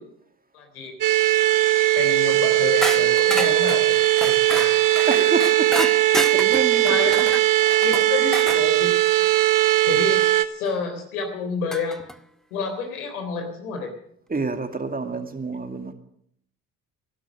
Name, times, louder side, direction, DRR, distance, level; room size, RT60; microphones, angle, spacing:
voice 1, 0.5-0.9 1.9-4.7 6.8-7.4 7.8-9.0 9.8-12.0 12.5-13.9, left 4 dB, 80° left, 5 dB, 3.7 m, -29 dB
sound 1, 1.0-10.5, right 16 dB, 45° right, 1.3 m, -19 dB
sound 2, 2.8-8.7 10.6-10.7 11.7-12.2, equal, ahead, 0.9 m, -30 dB
voice 2, 5.1-5.9 6.3-6.8 7.1-7.3 14.3-15.9, right 3 dB, 20° right, 6 dB, 2.4 m, -28 dB
18.0 x 12.0 x 6.5 m, 0.68 s
hypercardioid pair, 60°, 43 cm